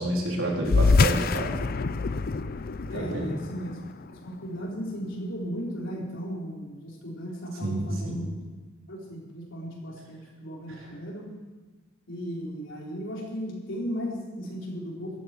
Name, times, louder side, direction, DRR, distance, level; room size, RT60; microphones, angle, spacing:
voice 1, 0.0-1.6 2.8-3.4 7.6-8.2 10.7-10.9, right 1 dB, 80° right, -2 dB, 4.1 m, -29 dB
sound 1, 0.6-5.5, left 4 dB, 50° left, 0.5 m, -26 dB
voice 2, 2.9-3.8 4.2-8.3 8.9-11.2 12.1-15.2, equal, 65° left, -3 dB, 4.5 m, -36 dB
16.5 x 13.5 x 4.7 m, 1.3 s
head